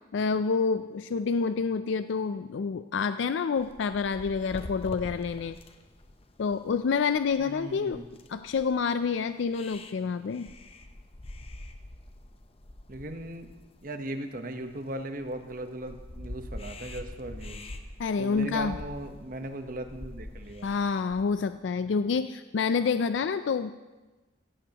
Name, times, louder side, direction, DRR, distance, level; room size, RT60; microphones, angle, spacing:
voice 1, 0.1-5.6 6.4-8.0 8.3-10.5 18.0-18.7 20.6-23.7, left 5 dB, 85° left, 11 dB, 0.4 m, -28 dB
sound 1, 3.6-21.3, left 1 dB, 35° left, 0.8 m, -45 dB
voice 2, 7.4-8.0 12.9-13.5 13.8-17.7 18.2-20.7, right 1 dB, 50° right, 7 dB, 1.0 m, -38 dB
16.0 x 15.5 x 2.9 m, 1.2 s
head